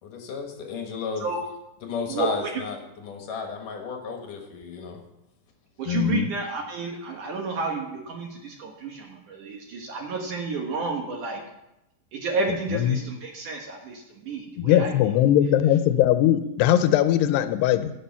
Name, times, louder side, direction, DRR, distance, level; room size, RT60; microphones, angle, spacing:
voice 1, 0.0-1.3 1.8-2.8 3.0-5.0, left 5 dB, 60° left, 3 dB, 2.6 m, -33 dB
voice 2, 2.1-2.5 5.8-11.4 12.1-14.9, right 3 dB, 60° right, 1 dB, 2.4 m, -31 dB
voice 3, 5.9-6.3 12.8-13.0 14.6-17.9, left 11 dB, 85° left, 11 dB, 2.7 m, -20 dB
16.5 x 7.4 x 5.7 m, 0.91 s
omnidirectional pair, 4.8 m